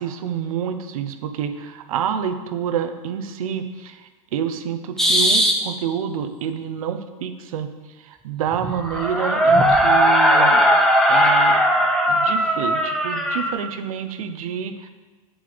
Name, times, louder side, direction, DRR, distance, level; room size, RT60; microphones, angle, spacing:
voice 1, 0.0-7.7 8.0-10.6 11.1-11.6 12.1-14.9, right 8 dB, 75° right, 9 dB, 1.0 m, -28 dB
sound 1, 5.0-5.5 8.5-13.5, equal, 5° left, 1.6 m, -17 dB
9.0 x 8.8 x 5.2 m, 1.3 s
hypercardioid pair, 90°, 18 cm